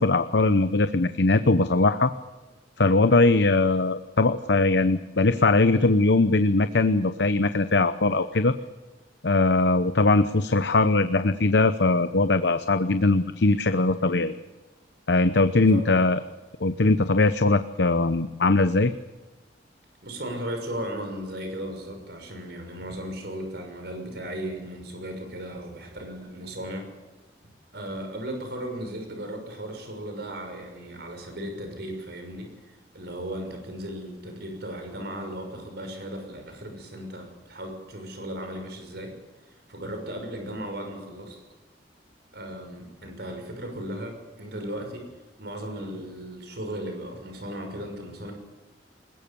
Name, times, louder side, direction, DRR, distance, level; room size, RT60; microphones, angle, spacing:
voice 1, 0.0-2.1 2.8-8.5 9.2-14.3 15.1-16.2 16.6-18.9, left 3 dB, 70° left, 11 dB, 0.9 m, -21 dB
voice 2, 15.7-16.0 20.0-26.9 27.7-39.1 39.5-41.4 42.3-45.1 45.4-48.3, right 1 dB, 65° right, 4 dB, 6.2 m, -36 dB
21.5 x 21.0 x 7.0 m, 1.2 s
head